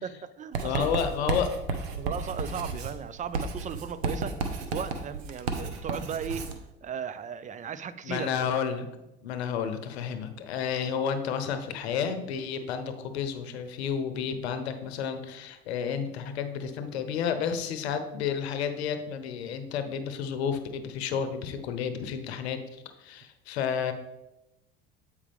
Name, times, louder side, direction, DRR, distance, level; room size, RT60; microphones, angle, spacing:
voice 1, 0.0-1.0 1.9-4.4 4.7-6.5 6.8-8.5, right 7 dB, 25° right, 15 dB, 0.4 m, -36 dB
Writing, 0.5-6.6, right 4 dB, 85° right, 0.9 m, -33 dB
voice 2, 0.6-1.8 8.0-8.9 9.2-23.9, left 7 dB, 90° left, 9 dB, 0.8 m, -31 dB
8.5 x 4.9 x 3.4 m, 0.93 s
hypercardioid pair, 80°, 31 cm